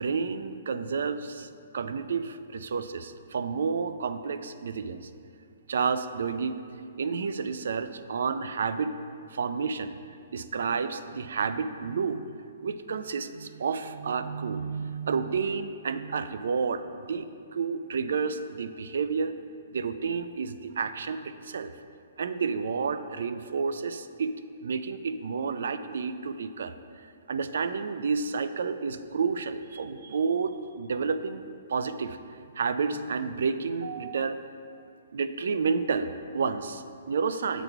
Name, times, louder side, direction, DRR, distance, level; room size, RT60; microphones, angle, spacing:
voice 1, 0.0-5.1 5.7-6.6 7.0-8.9 9.3-10.0 10.3-19.3 19.7-21.7 22.2-24.3 24.6-26.7 27.3-31.4 31.7-32.2 32.5-34.4 35.1-37.6, right 5 dB, 75° right, 11 dB, 0.3 m, -30 dB
7.8 x 4.0 x 4.5 m, 2.4 s
hypercardioid pair, 155°, 0 cm